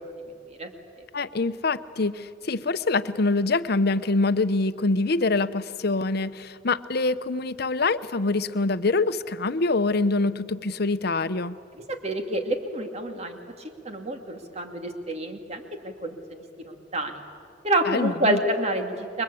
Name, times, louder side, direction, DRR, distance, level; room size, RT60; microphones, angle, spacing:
voice 1, 1.1-11.6 17.8-18.4, left 3 dB, 60° left, 13 dB, 0.8 m, -25 dB
voice 2, 11.9-17.2 17.6-19.2, right 1 dB, 35° right, 5 dB, 2.5 m, -28 dB
29.0 x 23.0 x 8.5 m, 2.3 s
head